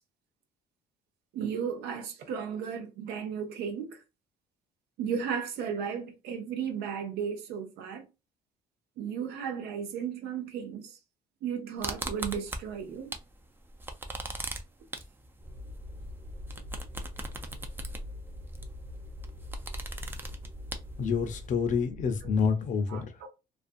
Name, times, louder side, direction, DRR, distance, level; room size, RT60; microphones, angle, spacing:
voice 1, 1.3-4.0 5.0-8.1 9.0-11.0 11.4-13.1 22.9-23.3, right 7 dB, 80° right, 0.6 m, -35 dB
sound 1, 11.8-13.3 13.6-21.5, right 2 dB, 10° right, 0.4 m, -39 dB
sound 2, 15.4-22.5, left 1 dB, 45° right, 0.9 m, -43 dB
voice 2, 21.0-23.1, left 6 dB, 50° left, 0.6 m, -28 dB
2.5 x 2.3 x 2.5 m
cardioid pair, 110°, 17 cm